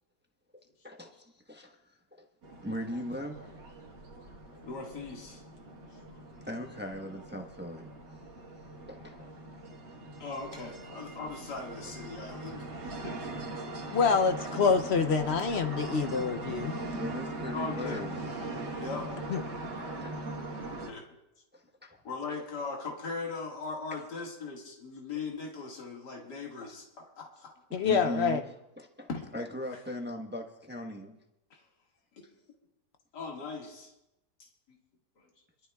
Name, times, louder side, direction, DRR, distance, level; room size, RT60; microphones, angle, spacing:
voice 1, 0.8-2.3 2.6-3.5 6.5-7.9 8.9-9.3 16.9-18.3 20.0-20.1 21.5-22.0 26.6-26.7 27.7-28.5 28.8-31.2, left 1 dB, 10° right, 2 dB, 0.8 m, -39 dB
sound 1, 2.4-20.9, right 2 dB, 90° right, 2.0 m, -40 dB
voice 2, 4.6-5.4 10.2-12.7 13.0-13.2 17.5-18.0 18.8-19.1 20.8-21.0 22.0-26.9 27.2-27.5 29.1-29.2 33.1-33.9, left 4 dB, 75° left, -1 dB, 2.5 m, -39 dB
voice 3, 13.9-16.8 19.3-19.4 27.7-28.4, left 5 dB, 60° left, 8 dB, 0.7 m, -26 dB
26.5 x 12.5 x 2.3 m, 0.90 s
omnidirectional pair, 1.8 m